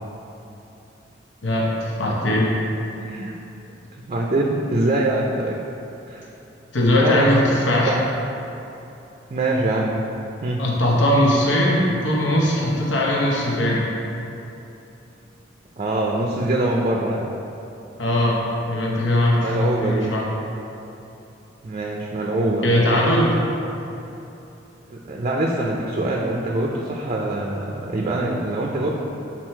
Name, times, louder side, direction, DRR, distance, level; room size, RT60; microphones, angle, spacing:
voice 1, 1.4-2.5 6.7-7.9 10.6-13.9 18.0-18.4 18.7-19.5 19.8-20.2 22.6-23.4, left 1 dB, 75° left, -4 dB, 0.9 m, -20 dB
voice 2, 3.0-3.3 4.0-5.6 6.1-6.3 7.0-7.6 7.9-8.0 9.3-10.0 10.4-10.6 15.8-17.3 19.3-20.1 21.6-23.0 24.9-28.9, right 2 dB, 35° right, -1 dB, 0.4 m, -24 dB
6.3 x 4.2 x 4.4 m, 2.9 s
head